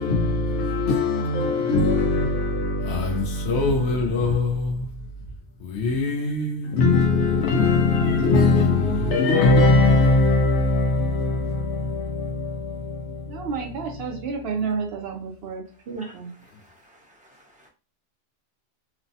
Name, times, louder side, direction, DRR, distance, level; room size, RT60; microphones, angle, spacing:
voice 1, 0.0-4.9 5.6-13.5, left 3 dB, 65° left, 0.8 m, -21 dB
voice 2, 13.3-16.3, right 5 dB, 60° right, 0.7 m, -30 dB
voice 3, 16.4-17.7, equal, 10° right, 0.5 m, -52 dB
3.1 x 2.1 x 2.6 m
omnidirectional pair, 1.4 m